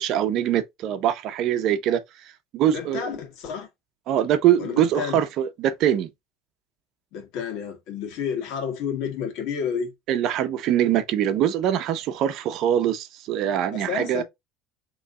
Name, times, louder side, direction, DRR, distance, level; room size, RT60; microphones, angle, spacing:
voice 1, 0.0-2.0 2.5-3.2 4.1-6.1 10.1-14.2, right 10 dB, 55° right, 0.7 m, -23 dB
voice 2, 2.7-3.7 4.6-5.2 7.1-9.9 13.7-14.2, left 7 dB, 65° left, 1.6 m, -30 dB
3.9 x 3.1 x 3.6 m
cardioid pair, 145°, 0 cm